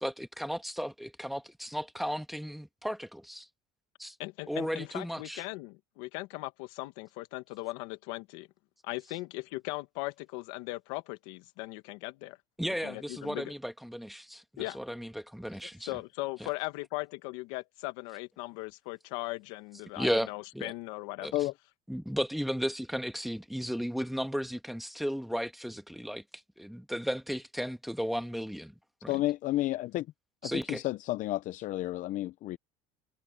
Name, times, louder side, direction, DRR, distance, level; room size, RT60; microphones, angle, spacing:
voice 1, 0.0-3.5 4.0-4.2 4.5-5.4 12.6-15.9 16.4-16.5 20.0-20.7 21.2-21.5 21.9-28.7 29.0-29.2 30.4-30.8, equal, ahead, 1.8 m, -35 dB
voice 2, 4.2-8.5 8.8-12.4 12.8-13.5 14.6-14.8 15.8-21.3, left 21 dB, 85° left, 1.7 m, -39 dB
voice 3, 29.1-30.1 30.4-32.6, left 16 dB, 60° left, 0.7 m, -31 dB
supercardioid pair, 110°, 15 cm